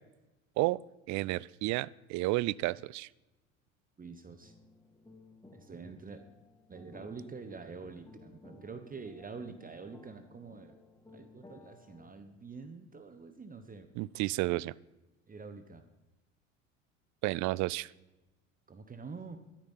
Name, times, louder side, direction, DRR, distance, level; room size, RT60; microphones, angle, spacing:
voice 1, 1.1-3.1 14.0-14.7 17.2-17.9, right 19 dB, 50° right, 24 dB, 0.5 m, -31 dB
voice 2, 4.0-4.5 5.5-6.3 6.7-10.8 11.1-13.9 15.3-15.9 18.7-19.4, right 4 dB, 20° right, 9 dB, 1.3 m, -46 dB
sound 1, 4.4-12.1, left 3 dB, 10° left, 2.5 m, -57 dB
13.0 x 12.5 x 5.8 m, 1.0 s
hypercardioid pair, 85°, 39 cm